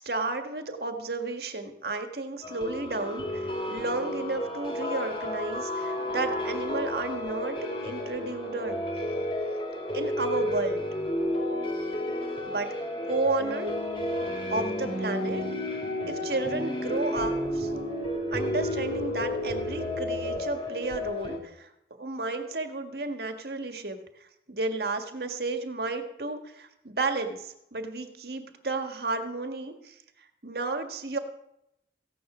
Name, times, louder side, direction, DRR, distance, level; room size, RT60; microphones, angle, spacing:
voice 1, 0.0-7.6 7.8-8.8 9.9-10.8 12.5-12.7 13.1-13.7 14.5-15.4 16.1-17.7 18.3-21.7 22.0-24.0 24.5-29.9 30.4-31.2, right 3 dB, 65° right, 6 dB, 1.7 m, -32 dB
sound 1, 2.4-21.4, left 1 dB, 30° left, 3.0 m, -32 dB
16.0 x 10.0 x 6.1 m, 0.81 s
head